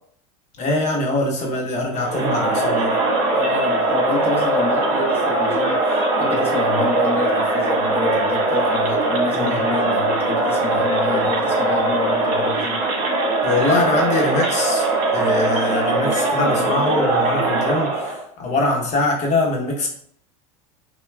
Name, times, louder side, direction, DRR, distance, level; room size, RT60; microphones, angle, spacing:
voice 1, 0.6-3.0 9.3-9.7 13.4-19.9, left 2 dB, 40° left, 0 dB, 0.9 m, -23 dB
Crowd, 1.9-18.2, right 2 dB, 50° right, 1.4 m, -21 dB
voice 2, 3.3-12.8, left 2 dB, 10° left, -2 dB, 0.9 m, -28 dB
5.4 x 2.2 x 2.3 m, 0.64 s
hypercardioid pair, 105°, 19 cm